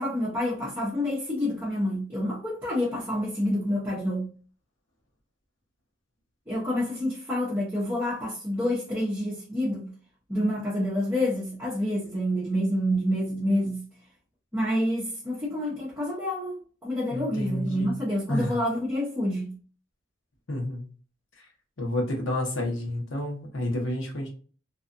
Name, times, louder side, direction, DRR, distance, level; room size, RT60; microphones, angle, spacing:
voice 1, 0.0-4.3 6.5-9.9 10.3-13.8 14.5-19.5, left 1 dB, 10° right, 0.8 m, -28 dB
voice 2, 17.1-17.9 18.3-18.6 20.5-20.8 21.8-24.3, left 1 dB, 75° left, 0.9 m, -30 dB
2.7 x 2.3 x 2.5 m
head